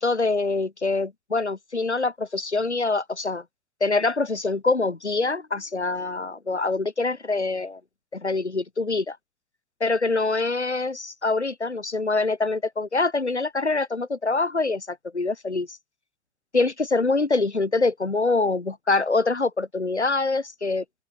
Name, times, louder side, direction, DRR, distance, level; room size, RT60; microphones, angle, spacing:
voice 1, 0.0-3.4 3.8-7.8 8.1-9.2 9.8-15.8 16.5-20.8, left 3 dB, 90° left, 4.0 m, -25 dB
open air
figure-of-eight pair, 65°, 33 cm